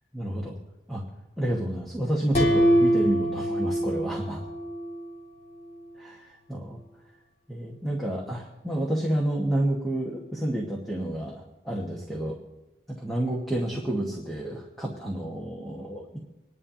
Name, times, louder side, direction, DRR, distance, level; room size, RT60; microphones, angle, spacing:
voice 1, 0.1-0.6 0.9-1.0 1.4-4.4 6.0-6.8 7.5-12.4 12.9-16.2, right 1 dB, ahead, -2 dB, 1.5 m, -30 dB
sound 1, 2.3-5.1, equal, 35° left, 1.8 m, -24 dB
27.0 x 11.0 x 2.8 m, 1.0 s
head